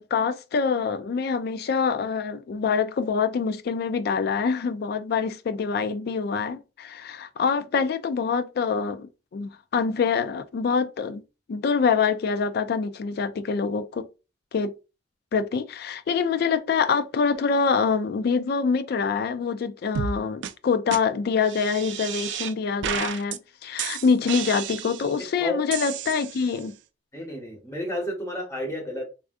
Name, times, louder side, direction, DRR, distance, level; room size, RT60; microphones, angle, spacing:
voice 1, 0.0-11.2 11.5-14.1 14.5-14.7 15.3-26.7, left 5 dB, 55° left, 0.3 m, -25 dB
sound 1, 20.0-20.2 20.4-20.5 20.9-21.0 21.4-22.5 22.8-23.4 23.8-25.2 25.7-26.7, right 8 dB, 75° right, 0.3 m, -32 dB
voice 2, 27.1-29.0, left 1 dB, 15° left, 1.0 m, -31 dB
3.4 x 2.4 x 2.5 m
head